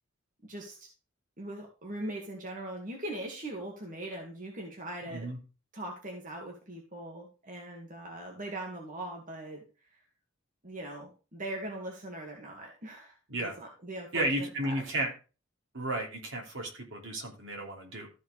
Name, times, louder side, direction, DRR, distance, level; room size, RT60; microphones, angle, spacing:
voice 1, 0.5-0.9 1.4-5.3 5.7-9.6 10.6-13.1 13.4-14.8, right 1 dB, 40° right, 0 dB, 2.1 m, -40 dB
voice 2, 5.0-5.4 13.3-13.5 14.1-15.1 15.7-18.1, right 1 dB, 65° right, 0 dB, 3.2 m, -33 dB
14.0 x 4.7 x 4.9 m, 0.34 s
head